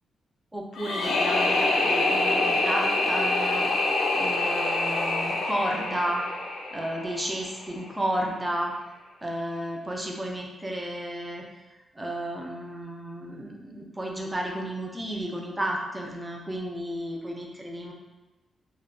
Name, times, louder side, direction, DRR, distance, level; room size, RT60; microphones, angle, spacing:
voice 1, 0.5-3.7 4.2-6.2 6.7-8.7 9.2-11.5 11.9-17.9, right 1 dB, 10° right, 0 dB, 0.3 m, -32 dB
sound 1, 0.7-7.7, left 2 dB, 75° left, 0.3 m, -26 dB
2.1 x 2.0 x 3.6 m, 1.1 s
wide cardioid pair, 160°, 0 cm